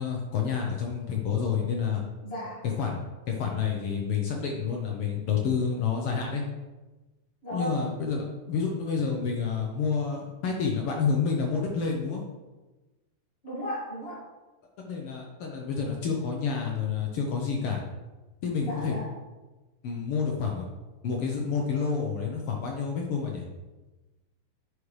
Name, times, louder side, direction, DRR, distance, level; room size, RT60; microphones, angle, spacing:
voice 1, 0.0-2.0 2.8-6.4 7.5-12.2 14.8-17.8 18.4-19.0 19.8-20.6 21.0-23.4, left 6 dB, 75° left, 0 dB, 1.3 m, -29 dB
voice 2, 2.2-2.7 7.4-7.9 13.4-14.2 18.6-19.1, equal, 25° left, -7 dB, 1.8 m, -35 dB
9.7 x 5.0 x 3.2 m, 1.2 s
omnidirectional pair, 3.6 m